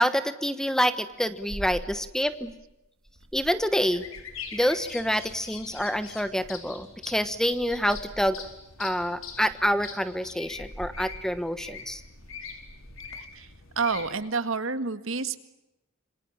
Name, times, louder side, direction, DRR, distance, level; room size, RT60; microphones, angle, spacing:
voice 1, 0.0-2.5 3.3-4.0 4.5-8.4 8.8-12.0, equal, 5° left, 12 dB, 1.1 m, -27 dB
sound 1, 0.7-2.8 3.0-5.3 5.7-7.3 8.4-8.7 9.1-13.3, right 1 dB, 90° right, 2.7 m, -46 dB
sound 2, 3.9-14.1, left 5 dB, 75° left, 4.9 m, -43 dB
voice 2, 13.2-13.5 13.8-15.4, right 4 dB, 75° right, 11 dB, 1.8 m, -29 dB
27.0 x 25.0 x 8.8 m, 0.91 s
head